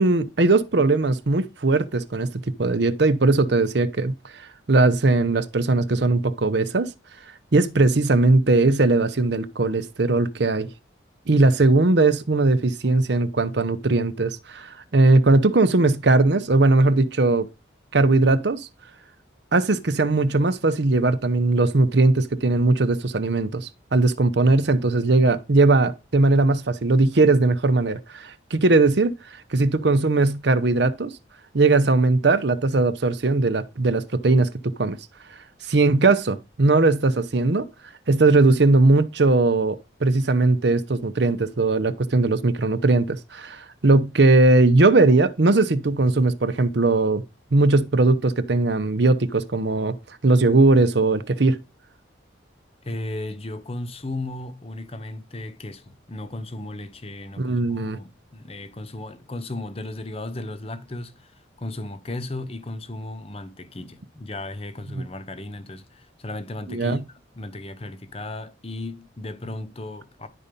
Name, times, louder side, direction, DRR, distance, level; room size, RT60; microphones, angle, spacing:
voice 1, 0.0-4.1 4.7-6.9 7.5-10.7 11.3-17.5 17.9-18.7 19.5-29.1 29.5-31.1 31.5-35.0 35.7-37.7 38.1-47.2 47.5-50.0 50.2-51.6 57.4-58.0 64.9-65.0 66.7-67.0, right 2 dB, 60° right, 0.7 m, -19 dB
voice 2, 52.8-67.0 67.3-70.3, left 2 dB, 30° left, 0.9 m, -35 dB
11.0 x 4.2 x 5.2 m
head